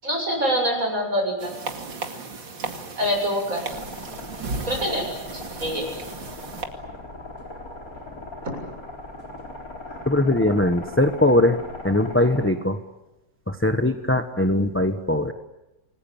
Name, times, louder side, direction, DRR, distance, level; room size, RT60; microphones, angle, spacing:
voice 1, 0.0-1.5 3.0-3.6 4.7-5.0 5.3-5.9, equal, 45° right, 2 dB, 7.8 m, -25 dB
sound 1, 1.4-6.7, right 4 dB, 85° right, 3.1 m, -35 dB
sound 2, 3.7-12.5, left 2 dB, 50° left, 4.6 m, -39 dB
voice 2, 10.1-11.6 11.8-12.8 13.5-15.3, left 1 dB, 10° left, 7 dB, 1.1 m, -20 dB
28.0 x 20.5 x 8.8 m, 0.95 s
omnidirectional pair, 2.0 m